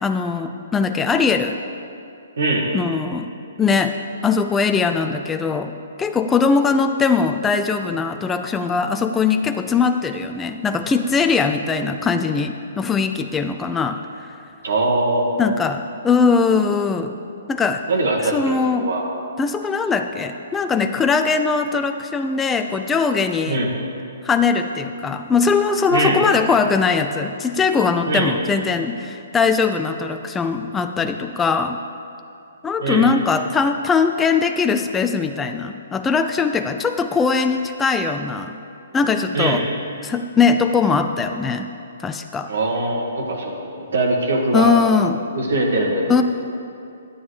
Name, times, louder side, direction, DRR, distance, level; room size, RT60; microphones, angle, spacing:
voice 1, 0.0-1.6 2.7-3.3 3.6-3.9 4.2-5.7 6.0-14.0 15.4-17.2 17.5-17.8 18.3-18.9 19.4-23.6 24.2-31.8 32.6-38.6 38.9-39.6 40.0-41.7 42.0-42.5 44.5-45.2 46.1-46.2, left 5 dB, 10° left, 6 dB, 0.4 m, -20 dB
voice 2, 2.4-2.7 14.6-15.3 17.9-19.1 23.4-23.7 25.9-26.2 28.1-28.3 32.8-33.1 39.3-39.6 42.5-44.7 45.3-46.2, right 2 dB, 80° right, -1 dB, 1.8 m, -21 dB
12.0 x 8.6 x 4.9 m, 2.5 s
hypercardioid pair, 150°, 0 cm